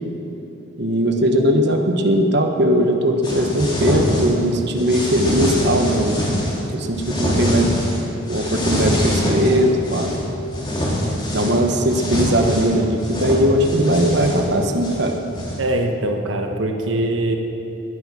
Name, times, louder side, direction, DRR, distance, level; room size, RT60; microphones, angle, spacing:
voice 1, 0.8-6.3 6.7-7.7 8.3-10.1 11.3-15.2, equal, 60° right, 3 dB, 1.2 m, -19 dB
sound 1, 3.2-4.5 4.8-6.6 7.0-8.0 8.3-10.2 10.5-15.7, equal, 25° left, 3.3 m, -24 dB
voice 2, 15.6-17.4, right 1 dB, 85° right, 3 dB, 1.2 m, -22 dB
20.0 x 9.4 x 6.2 m, 3.0 s
head